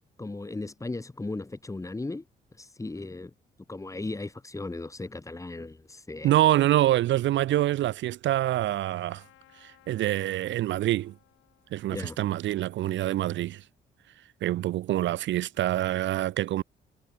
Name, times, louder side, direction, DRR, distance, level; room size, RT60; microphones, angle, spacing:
voice 1, 0.2-2.2 2.6-3.3 3.7-6.3 11.9-12.2, left 2 dB, 15° left, 1.8 m, -36 dB
voice 2, 6.2-9.2 9.6-11.1 11.7-13.6 14.4-16.6, right 14 dB, 70° right, 0.5 m, -26 dB
Trumpet, 8.4-13.4, left 14 dB, 85° left, 5.6 m, -62 dB
cardioid pair, 90°, 20 cm